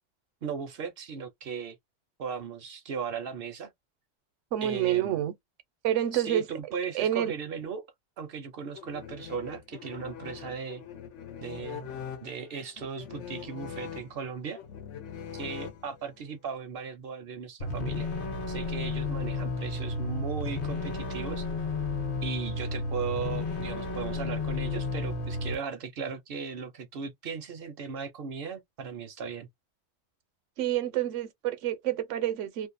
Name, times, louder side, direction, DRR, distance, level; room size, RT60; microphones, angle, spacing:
voice 1, 0.4-1.8 2.2-3.7 4.6-5.2 6.1-7.9 8.2-10.8 11.4-11.9 12.2-14.6 15.3-18.1 18.5-21.5 22.2-29.5, right 6 dB, 65° right, 0.7 m, -37 dB
voice 2, 4.5-5.3 5.8-6.5 6.9-7.3 30.6-32.7, right 11 dB, 85° right, 0.9 m, -28 dB
sound 1, 8.7-16.2, left 8 dB, 90° left, 1.0 m, -42 dB
sound 2, 17.6-25.6, left 3 dB, 50° left, 1.0 m, -32 dB
2.5 x 2.0 x 2.5 m
omnidirectional pair, 1.2 m